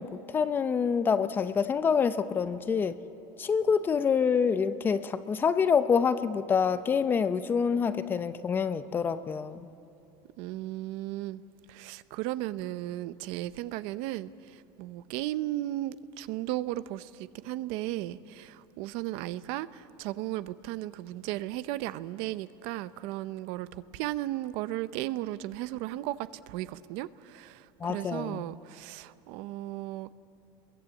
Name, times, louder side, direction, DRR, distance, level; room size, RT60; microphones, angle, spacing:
voice 1, 0.0-3.0 3.4-9.7 27.8-28.4, left 6 dB, 20° left, 12 dB, 0.6 m, -27 dB
voice 2, 10.4-11.4 11.7-30.1, right 15 dB, 60° right, 15 dB, 0.7 m, -35 dB
29.5 x 22.0 x 8.6 m, 2.9 s
cardioid pair, 170°, 11 cm